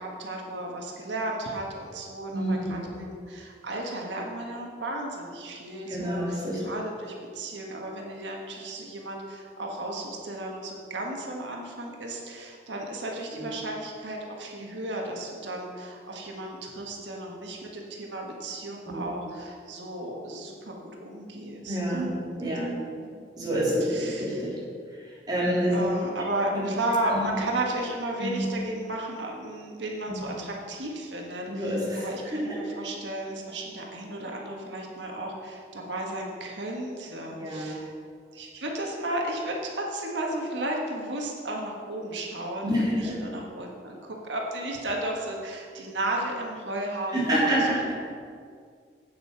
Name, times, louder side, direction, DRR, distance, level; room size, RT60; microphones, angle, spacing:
voice 1, 0.0-22.6 23.0-23.5 23.8-24.4 25.7-37.9 38.3-47.7, right 1 dB, 90° right, 0 dB, 1.6 m, -34 dB
voice 2, 2.3-3.0 5.9-6.6 13.4-13.5 18.9-19.0 21.6-22.7 23.3-24.5 25.3-25.7 26.5-26.6 27.1-27.3 28.2-28.5 30.1-30.2 31.5-32.0 32.3-32.6 37.4-37.8 42.6-43.1 47.1-47.9, equal, 25° right, -6 dB, 3.0 m, -28 dB
8.7 x 7.9 x 5.9 m, 2.1 s
head